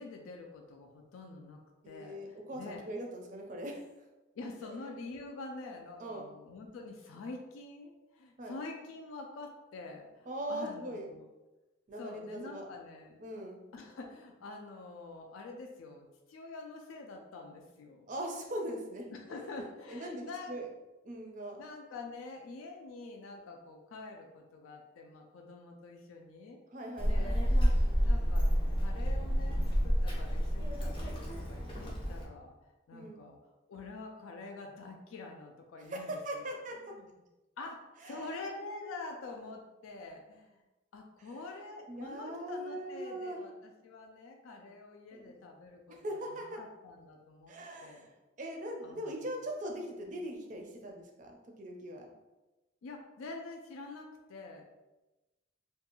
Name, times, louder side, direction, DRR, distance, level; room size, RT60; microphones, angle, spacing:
voice 1, 0.0-1.6 1.9-2.8 4.4-11.3 12.0-13.2 13.7-18.1 19.1-20.6 21.6-26.6 27.0-27.4 28.0-32.6 32.9-33.4 33.7-36.5 36.9-37.1 37.6-40.6 40.9-47.6 47.8-48.1 48.8-49.1 52.8-54.7, left 3 dB, 85° left, 2 dB, 0.4 m, -46 dB
voice 2, 1.8-4.1 4.6-4.9 6.0-6.3 8.4-8.6 10.3-11.1 11.9-12.6 13.2-13.6 18.1-20.6 21.0-21.6 26.7-27.3 32.9-33.2 35.8-36.9 38.0-38.4 41.2-41.4 41.9-43.4 45.1-45.3 45.9-46.6 47.5-52.1, right 1 dB, 40° right, 2 dB, 0.4 m, -41 dB
Child speech kid speaking, 27.0-32.2, equal, 25° left, 0.5 m, -29 dB
2.6 x 2.3 x 2.9 m, 1.1 s
head